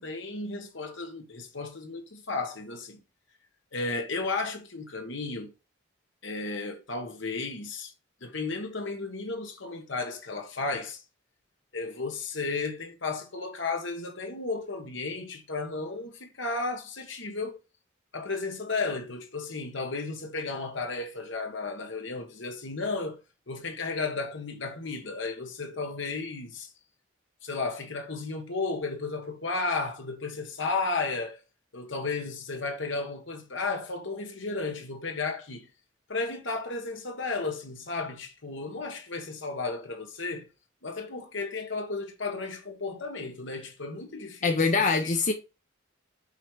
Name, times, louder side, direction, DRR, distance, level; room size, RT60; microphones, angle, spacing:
voice 1, 0.0-3.0 3.7-5.5 6.2-7.9 8.2-11.0 11.7-17.6 18.1-23.2 23.5-26.7 27.4-31.4 31.7-35.7 36.1-40.5 40.8-45.2, left 3 dB, 70° left, 1.5 m, -34 dB
voice 2, 44.4-45.3, left 4 dB, 40° left, 0.7 m, -23 dB
5.7 x 4.8 x 4.5 m
head